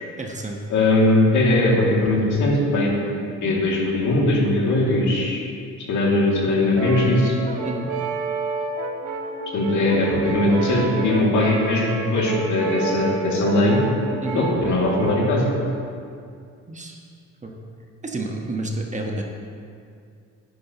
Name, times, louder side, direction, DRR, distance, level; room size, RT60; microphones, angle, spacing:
voice 1, 0.2-0.6 3.4-3.6 7.6-7.9 14.2-14.5 16.7-17.0 17.4-17.6 18.0-19.2, right 2 dB, 25° right, 1 dB, 1.2 m, -30 dB
voice 2, 0.7-5.4 5.9-7.4 9.5-13.8 14.3-15.5, left 2 dB, 70° left, -4 dB, 2.6 m, -20 dB
Brass instrument, 6.8-15.3, right 4 dB, 75° right, 1.1 m, -30 dB
10.5 x 10.0 x 3.0 m, 2.3 s
cardioid pair, 90°, 30 cm